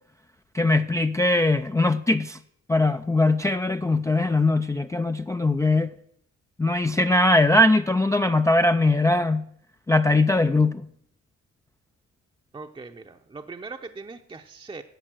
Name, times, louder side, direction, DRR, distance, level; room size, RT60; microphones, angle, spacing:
voice 1, 0.5-2.4 2.7-6.0 6.6-9.5 9.9-10.9, left 2 dB, 10° left, 0.4 m, -21 dB
voice 2, 12.5-14.8, right 4 dB, 15° right, 0.7 m, -40 dB
11.0 x 7.6 x 7.6 m
cardioid pair, 90°, 30 cm